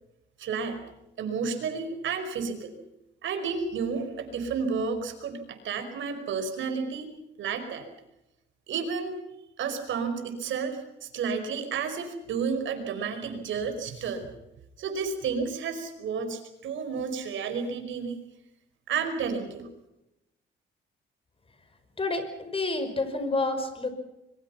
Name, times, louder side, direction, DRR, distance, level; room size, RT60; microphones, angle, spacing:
voice 1, 0.4-0.8 1.2-2.8 3.2-7.1 7.4-7.9 8.7-9.2 9.6-14.3 14.8-18.2 18.9-19.7, right 5 dB, 75° right, 7 dB, 5.1 m, -31 dB
voice 2, 22.0-23.9, left 2 dB, 30° left, 9 dB, 5.6 m, -29 dB
26.0 x 23.0 x 5.9 m, 0.90 s
cardioid pair, 90°, 20 cm